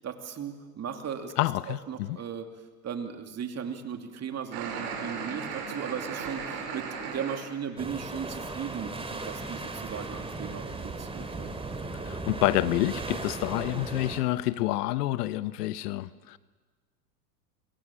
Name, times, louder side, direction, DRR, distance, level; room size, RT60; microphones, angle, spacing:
voice 1, 0.0-1.3 1.7-2.5 2.8-11.5, right 7 dB, 30° right, 2.9 m, -37 dB
voice 2, 1.4-2.2 12.0-16.4, left 16 dB, 70° left, 1.0 m, -28 dB
sound 1, 4.5-7.4, right 5 dB, 55° right, 6.2 m, -36 dB
sound 2, 7.8-14.2, right 3 dB, 10° right, 2.9 m, -37 dB
26.5 x 23.0 x 7.5 m
hypercardioid pair, 100°, 49 cm